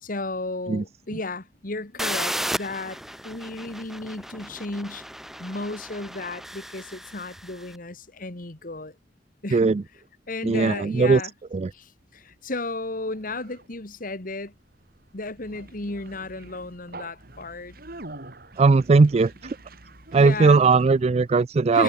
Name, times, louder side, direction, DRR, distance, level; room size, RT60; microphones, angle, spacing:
voice 1, 0.0-5.1 5.4-9.0 9.4-9.7 10.3-11.3 11.7-14.5 15.1-17.8 20.1-20.6 21.7-21.8, left 2 dB, 50° left, 1.9 m, -34 dB
sound 1, 2.0-7.7, equal, ahead, 1.8 m, -34 dB
voice 2, 9.5-9.8 10.4-11.2 11.5-11.7 18.6-19.3 20.1-21.8, right 4 dB, 35° right, 0.4 m, -18 dB
Conversation, 11.8-21.3, right 2 dB, 55° right, 4.7 m, -46 dB
head